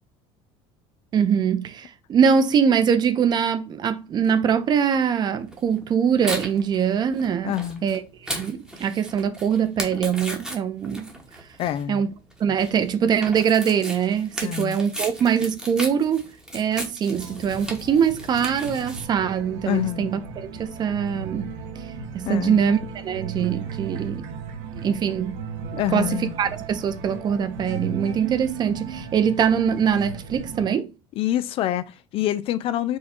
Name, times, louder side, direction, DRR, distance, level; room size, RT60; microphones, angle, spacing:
voice 1, 1.1-7.5 7.8-11.1 11.9-12.1 12.4-16.3 16.5-21.5 22.1-24.3 24.8-25.4 25.9-30.9, right 7 dB, 35° right, 0.5 m, -23 dB
Tearing, 5.5-19.0, right 1 dB, 5° right, 1.0 m, -36 dB
voice 2, 7.4-7.9 11.6-12.0 14.4-14.8 19.7-20.1 22.3-22.6 25.8-26.3 31.2-33.0, left 12 dB, 50° left, 0.3 m, -26 dB
sound 1, 17.1-30.6, right 5 dB, 65° right, 1.0 m, -36 dB
4.4 x 2.2 x 4.3 m
cardioid pair, 130°, 12 cm